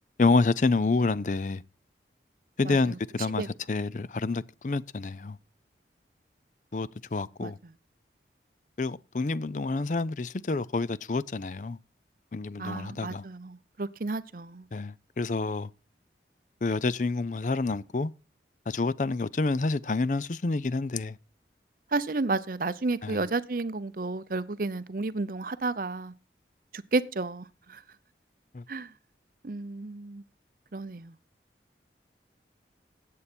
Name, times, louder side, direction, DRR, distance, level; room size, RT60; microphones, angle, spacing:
voice 1, 0.2-1.6 2.6-5.4 6.7-7.6 8.8-11.8 12.3-13.2 14.7-15.7 16.6-18.1 18.7-21.2 23.0-23.2 28.5-28.6, left 3 dB, 45° left, 0.5 m, -28 dB
voice 2, 2.6-3.0 3.4-3.5 7.4-7.5 12.6-14.6 21.9-26.1 26.7-27.8 28.7-28.9 29.4-30.2 30.7-31.1, right 3 dB, 50° right, 0.6 m, -32 dB
14.0 x 8.4 x 4.4 m
head